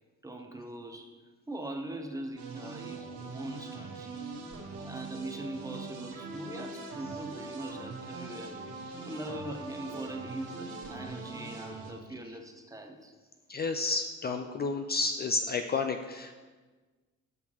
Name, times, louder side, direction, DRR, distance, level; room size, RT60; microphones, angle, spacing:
voice 1, 0.2-1.1 1.5-4.1 4.8-8.5 9.0-13.1 13.6-13.7, right 1 dB, 10° right, 4 dB, 0.7 m, -41 dB
sound 1, 2.4-11.9, right 3 dB, 80° right, 1.3 m, -42 dB
voice 2, 13.5-16.3, left 3 dB, 35° left, 6 dB, 0.4 m, -31 dB
7.9 x 5.7 x 2.9 m, 1.3 s
cardioid pair, 90°, 30 cm